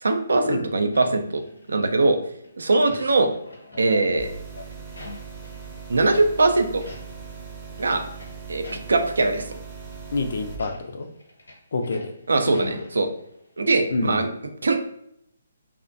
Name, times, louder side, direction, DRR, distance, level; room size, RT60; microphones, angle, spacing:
voice 1, 0.0-1.4 1.7-2.2 2.6-3.3 3.8-4.3 5.9-6.8 7.8-8.0 8.5-9.6 12.3-13.1 13.6-14.3 14.6-14.8, right 3 dB, 75° right, 6 dB, 0.3 m, -21 dB
sound 1, 0.9-2.1 2.4-5.8 6.1-6.3 6.7-7.3 7.6-9.3 9.8-10.0 10.5-13.4 13.7-13.8, left 2 dB, 80° left, 0.8 m, -43 dB
sound 2, 4.2-10.6, right 6 dB, 20° right, 0.6 m, -39 dB
voice 2, 10.1-11.1 11.7-12.1 12.6-12.7 13.9-14.3, left 3 dB, 60° left, 6 dB, 0.3 m, -27 dB
2.4 x 2.0 x 2.5 m, 0.74 s
figure-of-eight pair, 140°, 0 cm